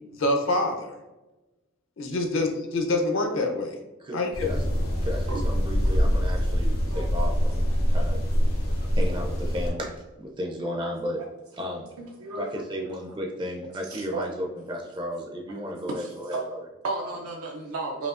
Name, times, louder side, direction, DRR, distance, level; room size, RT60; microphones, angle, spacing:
voice 1, 0.1-0.9 2.0-3.8 4.1-4.5, left 2 dB, 65° left, 2 dB, 0.7 m, -26 dB
voice 2, 4.0-4.6 5.0-8.2 8.9-11.2 11.5-11.9 12.3-16.7 17.0-17.2, equal, 20° right, 1 dB, 0.4 m, -34 dB
sound 1, 4.3-9.7, equal, 85° left, 1.2 m, -24 dB
voice 3, 12.0-12.6 14.1-14.2 16.0-16.4 16.8-18.1, right 3 dB, 85° right, -1 dB, 0.5 m, -33 dB
5.0 x 2.7 x 2.5 m, 1.1 s
head